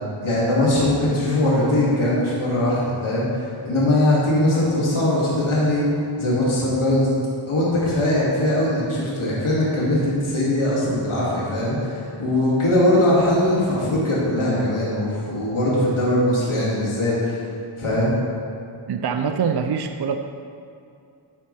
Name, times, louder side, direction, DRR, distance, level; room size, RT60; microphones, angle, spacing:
voice 1, 0.2-5.9 6.2-7.1 7.5-17.4 17.8-18.1, left 1 dB, 75° left, -7 dB, 2.4 m, -21 dB
voice 2, 18.8-20.2, right 6 dB, 55° right, 6 dB, 0.6 m, -24 dB
12.0 x 10.5 x 3.4 m, 2.4 s
wide cardioid pair, 110°, 49 cm